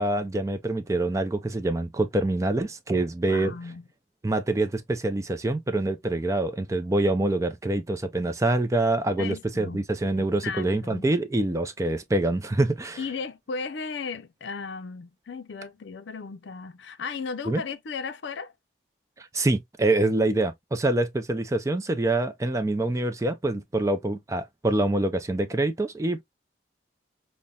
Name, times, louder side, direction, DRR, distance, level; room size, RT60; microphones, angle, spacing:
voice 1, 0.0-3.5 4.2-13.0 17.5-17.6 19.2-26.2, right 2 dB, 15° right, 0.3 m, -25 dB
voice 2, 3.3-3.8 9.2-9.8 10.2-11.1 13.0-18.5, left 5 dB, 75° left, 0.5 m, -36 dB
5.4 x 2.1 x 2.2 m
head